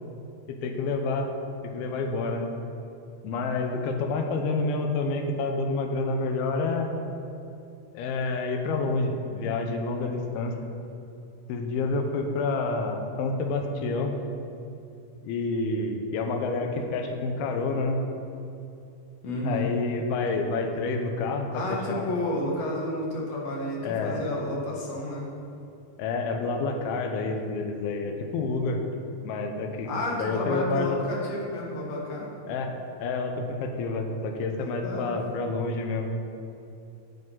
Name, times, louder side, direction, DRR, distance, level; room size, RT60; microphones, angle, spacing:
voice 1, 0.5-1.3 1.6-2.5 3.2-6.9 7.9-10.5 11.5-14.1 15.2-18.0 19.4-22.0 23.8-24.2 26.0-28.8 29.2-31.0 32.5-32.7 33.0-36.1, left 3 dB, 80° left, 4 dB, 2.7 m, -28 dB
voice 2, 19.2-19.7 21.5-25.3 29.9-32.3 34.8-35.2, left 1 dB, 55° left, -3 dB, 1.9 m, -31 dB
7.9 x 7.8 x 5.5 m, 2.7 s
omnidirectional pair, 4.6 m